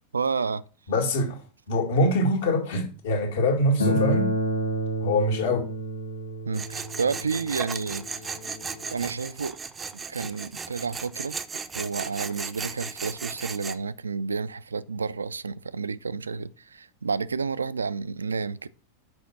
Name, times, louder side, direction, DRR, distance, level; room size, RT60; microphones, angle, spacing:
voice 1, 0.1-0.6 6.4-8.3 8.9-9.6 9.9-11.4 11.7-18.7, right 5 dB, 75° right, 0.3 m, -30 dB
voice 2, 0.9-1.4 1.7-4.3 5.0-5.7, left 1 dB, 55° left, 2.0 m, -24 dB
Acoustic guitar, 3.8-9.0, equal, 80° left, 1.8 m, -30 dB
Tools, 6.5-13.8, right 5 dB, 15° right, 0.5 m, -36 dB
6.1 x 5.0 x 5.9 m
figure-of-eight pair, 90°, 0 cm